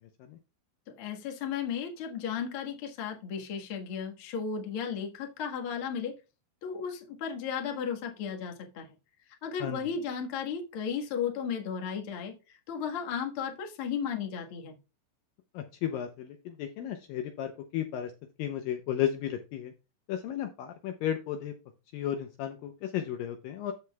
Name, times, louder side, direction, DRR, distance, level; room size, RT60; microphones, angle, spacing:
voice 1, 1.0-6.1 6.6-8.9 9.4-14.8, left 7 dB, 55° left, 2 dB, 1.6 m, -34 dB
voice 2, 15.5-18.1 18.4-19.7 20.1-21.5 21.9-23.7, left 10 dB, 75° left, 6 dB, 2.2 m, -34 dB
15.0 x 5.1 x 2.3 m, 0.29 s
omnidirectional pair, 4.6 m